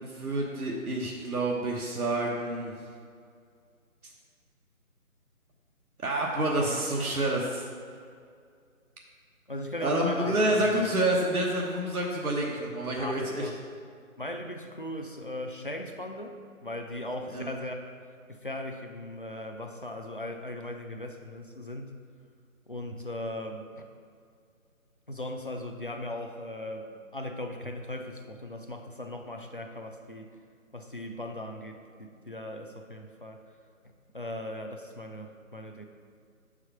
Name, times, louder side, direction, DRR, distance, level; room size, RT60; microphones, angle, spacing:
voice 1, 0.0-2.7 6.0-7.6 9.8-13.5 17.3-17.5, right 1 dB, 90° right, -2 dB, 1.2 m, -28 dB
voice 2, 9.5-11.0 13.0-13.6 14.2-21.9 22.7-23.8 25.1-30.3 30.7-33.4 34.1-35.9, left 1 dB, 40° left, 4 dB, 0.4 m, -38 dB
5.5 x 4.8 x 5.6 m, 2.2 s
figure-of-eight pair, 165°, 43 cm